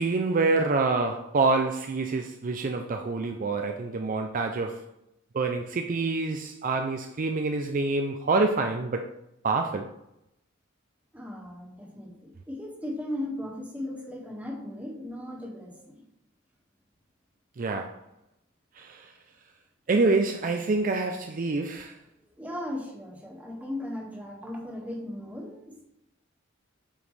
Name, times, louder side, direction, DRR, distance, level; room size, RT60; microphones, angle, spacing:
voice 1, 0.0-4.8 5.3-9.1 9.4-9.9 17.6-18.0 18.8-19.1 19.9-22.0, right 3 dB, 40° right, 0.4 m, -26 dB
voice 2, 11.1-16.0 22.4-25.8, left 1 dB, 5° right, 1.7 m, -37 dB
9.0 x 5.2 x 3.3 m
head